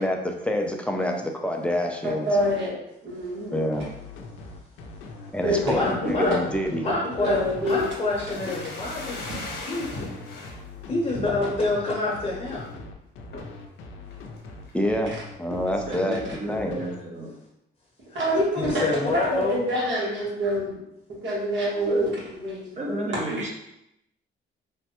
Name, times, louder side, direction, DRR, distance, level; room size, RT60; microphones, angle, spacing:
voice 1, 0.0-2.3 3.5-3.8 5.3-6.9 14.7-15.1 15.4-16.2 16.5-16.7, left 1 dB, 5° left, 2 dB, 0.4 m, -26 dB
voice 2, 2.0-2.8 3.0-3.6 5.4-6.3 7.2-7.8 18.1-18.7 19.1-20.7 21.1-22.1 22.4-22.9, equal, 70° right, -6 dB, 1.2 m, -26 dB
sound 1, 3.7-17.0, left 3 dB, 90° left, 0.4 m, -42 dB
voice 3, 5.6-6.3 6.8-9.3 9.7-10.2 10.9-12.6 18.1-18.2 18.6-19.6, left 2 dB, 30° left, -4 dB, 0.8 m, -27 dB
sound 2, 7.3-10.6 11.1-11.8 12.2-12.3 12.5-12.8 13.3-13.6 14.1-14.8 15.1-15.2, left 2 dB, 55° left, 1.0 m, -38 dB
voice 4, 15.9-17.3 21.9-22.1 22.8-23.5, right 1 dB, 35° right, -1 dB, 0.8 m, -32 dB
3.2 x 2.1 x 2.8 m, 0.84 s
cardioid pair, 90°, 20 cm